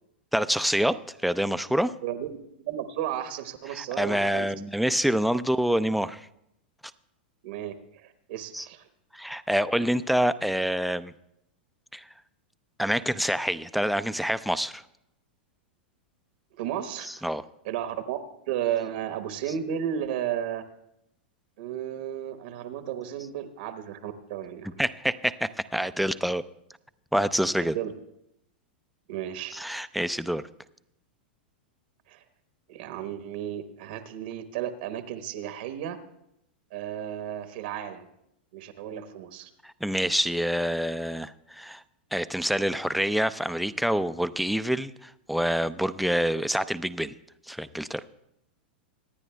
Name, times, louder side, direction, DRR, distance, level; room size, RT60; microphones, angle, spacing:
voice 1, 0.3-1.0 1.2-1.9 3.6-6.3 8.5-8.7 9.1-11.1 11.9-12.0 12.8-14.8 17.0-17.4 19.5-19.6 24.8-26.4 27.1-27.8 29.5-30.4 39.6-41.8 42.1-47.1 47.5-48.0, equal, ahead, 13 dB, 0.4 m, -27 dB
voice 2, 2.0-4.5 7.4-8.9 16.5-17.2 17.6-18.2 18.5-20.6 21.6-24.7 27.6-27.9 29.1-29.5 32.1-32.2 32.7-36.0 36.7-38.1 38.5-39.5, right 10 dB, 65° right, 9 dB, 1.0 m, -33 dB
25.0 x 9.9 x 2.2 m, 0.79 s
hypercardioid pair, 115°, 5 cm